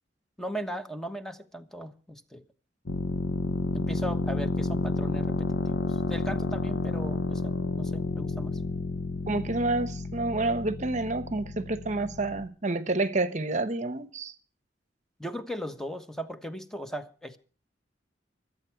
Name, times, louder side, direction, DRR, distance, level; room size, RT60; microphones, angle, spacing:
voice 1, 0.4-2.4 3.7-8.6 15.2-17.4, equal, 5° left, 1.2 m, -38 dB
sound 1, 2.9-12.5, left 3 dB, 85° left, 1.1 m, -31 dB
voice 2, 9.3-14.3, right 2 dB, 40° right, 1.0 m, -29 dB
25.0 x 8.6 x 4.7 m
head